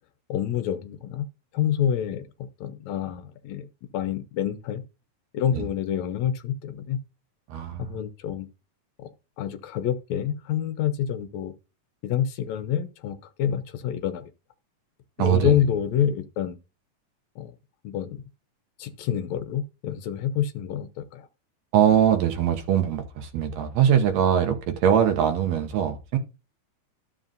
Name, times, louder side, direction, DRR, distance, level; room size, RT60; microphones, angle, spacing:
voice 1, 0.3-1.3 1.5-2.2 2.6-3.7 3.9-4.8 5.3-7.0 7.8-8.5 9.4-11.5 12.0-14.3 15.2-16.6 17.4-17.5 17.8-18.2 18.8-21.3, left 9 dB, 75° left, 2.0 m, -27 dB
voice 2, 7.5-7.9 15.2-15.5 21.7-26.2, right 9 dB, 70° right, 2.1 m, -22 dB
12.5 x 7.4 x 2.6 m
omnidirectional pair, 3.4 m